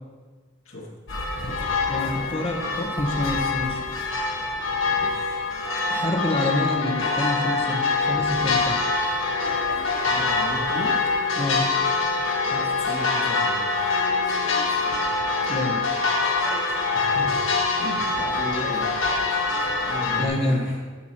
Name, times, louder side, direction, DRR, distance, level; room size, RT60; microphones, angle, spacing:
sound 1, 1.1-20.3, left 3 dB, 65° left, 1.1 m, -24 dB
voice 1, 1.9-3.8 5.9-8.8 11.4-11.6 15.5-15.8 20.2-20.7, left 1 dB, 30° left, 2 dB, 1.0 m, -27 dB
voice 2, 4.9-5.5 10.0-11.0 12.5-13.7 16.9-19.0 19.9-20.8, left 1 dB, 90° left, -3 dB, 1.9 m, -35 dB
10.5 x 7.1 x 3.0 m, 1.4 s
head